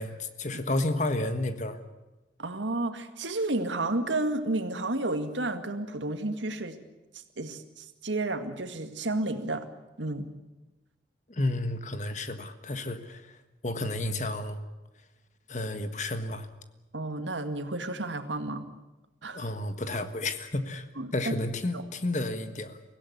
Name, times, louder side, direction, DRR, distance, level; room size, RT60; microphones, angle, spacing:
voice 1, 0.0-1.8 11.3-13.4 13.6-14.6 15.5-16.5 19.3-20.9 21.1-22.8, left 2 dB, 40° left, 9 dB, 1.5 m, -31 dB
voice 2, 2.4-6.8 7.4-9.6 10.0-10.3 16.9-18.7 19.2-19.4 21.0-21.3 21.7-21.8, right 2 dB, 85° right, 8 dB, 2.0 m, -31 dB
24.5 x 17.0 x 9.6 m, 1.1 s
head